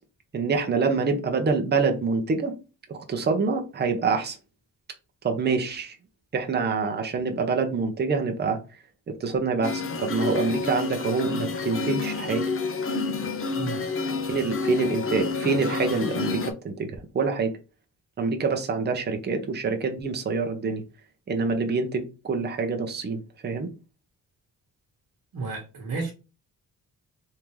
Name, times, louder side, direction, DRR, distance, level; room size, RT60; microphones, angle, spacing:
voice 1, 0.3-2.5 2.9-4.4 5.2-6.0 6.3-8.6 9.2-12.5 14.3-17.5 18.2-20.8 21.3-23.7, right 4 dB, 30° right, 0.7 m, -26 dB
sound 1, 9.6-16.5, left 4 dB, 40° left, 0.6 m, -29 dB
voice 2, 25.3-26.1, right 4 dB, 65° right, 1.2 m, -32 dB
3.5 x 2.7 x 3.1 m
wide cardioid pair, 135°, 35 cm